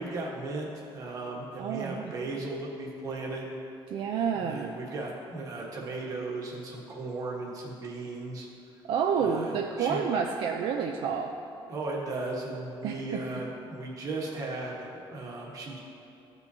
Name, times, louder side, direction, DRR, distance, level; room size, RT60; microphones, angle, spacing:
voice 1, 0.0-3.6 4.3-8.5 9.2-10.0 11.7-15.8, right 2 dB, 40° right, -2 dB, 1.2 m, -36 dB
voice 2, 1.6-2.1 3.9-4.7 8.9-11.4 12.8-13.2, right 6 dB, 65° right, 2 dB, 0.4 m, -29 dB
14.0 x 5.4 x 2.7 m, 2.7 s
cardioid pair, 175°, 9 cm